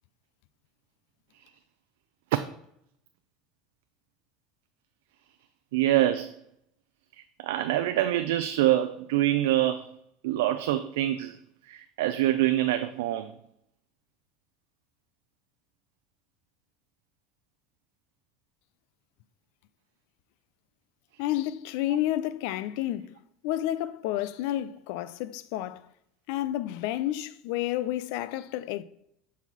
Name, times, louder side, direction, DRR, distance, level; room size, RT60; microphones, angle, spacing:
voice 1, 5.7-6.4 7.4-9.9 10.2-11.4 11.7-13.3, right 13 dB, 85° right, 0.4 m, -25 dB
voice 2, 21.2-23.2 23.4-25.9 26.3-28.8, left 13 dB, 75° left, 0.4 m, -30 dB
7.0 x 4.1 x 4.2 m
supercardioid pair, 110°, 0 cm